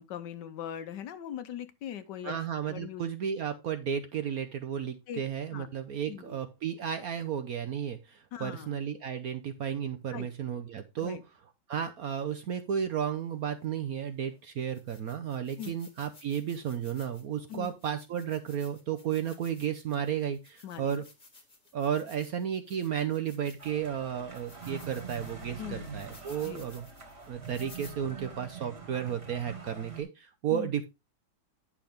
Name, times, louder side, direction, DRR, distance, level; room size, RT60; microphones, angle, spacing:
voice 1, 0.0-2.4 2.7-3.0 5.1-5.2 5.5-5.7 6.1-6.4 8.3-8.8 10.1-10.3 11.0-11.2 15.6-15.8 17.5-17.7 20.6-21.0 25.6-25.9 26.4-26.7 30.5-30.7, left 9 dB, 70° left, 1.3 m, -40 dB
voice 2, 2.2-11.2 11.7-21.0 21.7-26.9 27.3-30.9, right 8 dB, 65° right, 0.9 m, -33 dB
sound 1, 13.6-13.7 14.3-14.4 14.7-23.9 24.3-27.9, left 3 dB, 25° left, 1.5 m, -56 dB
sound 2, 23.6-30.0, right 5 dB, 35° right, 1.9 m, -45 dB
9.9 x 6.0 x 3.4 m
omnidirectional pair, 2.2 m